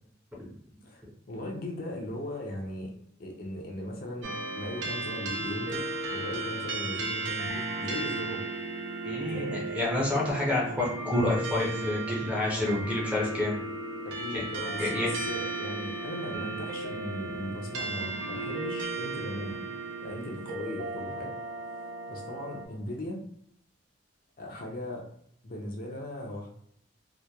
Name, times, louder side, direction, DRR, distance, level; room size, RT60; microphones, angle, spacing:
voice 1, 0.8-2.9 3.2-8.5 9.3-9.6 12.5-12.9 14.0-19.7 20.0-21.3 21.8-23.2 24.4-25.0 25.4-26.5, left 1 dB, 45° left, 0 dB, 0.4 m, -38 dB
sound 1, 4.2-22.7, right 2 dB, 75° right, 0.5 m, -35 dB
voice 2, 9.0-13.6 14.3-14.4 14.8-15.1, left 2 dB, 5° right, -4 dB, 0.5 m, -28 dB
2.8 x 2.1 x 2.2 m, 0.69 s
head